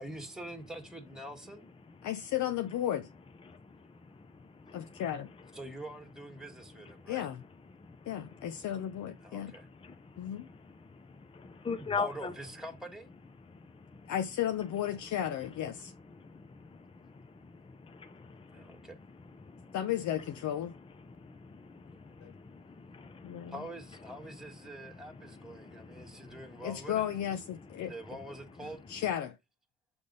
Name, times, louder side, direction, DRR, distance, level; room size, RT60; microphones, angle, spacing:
voice 1, 0.0-1.7 5.5-7.3 9.2-9.7 11.8-13.1 18.5-19.0 21.9-22.2 23.5-27.1 27.8-28.8, right 1 dB, ahead, 1.6 m, -45 dB
voice 2, 2.0-3.1 4.7-5.3 7.1-7.4 8.1-9.5 10.2-10.5 14.1-15.9 19.7-20.7 22.2-22.3 23.2-23.5 26.6-27.9 28.9-29.4, left 11 dB, 70° left, 0.7 m, -34 dB
voice 3, 4.7-5.0 7.8-8.0 9.8-10.6 10.9-12.3 13.9-14.1 16.2-16.8 17.4-18.9 19.5-19.7 21.2-23.5 25.6-26.4, left 5 dB, 20° left, 0.6 m, -42 dB
7.0 x 3.4 x 3.9 m
cardioid pair, 90°, 30 cm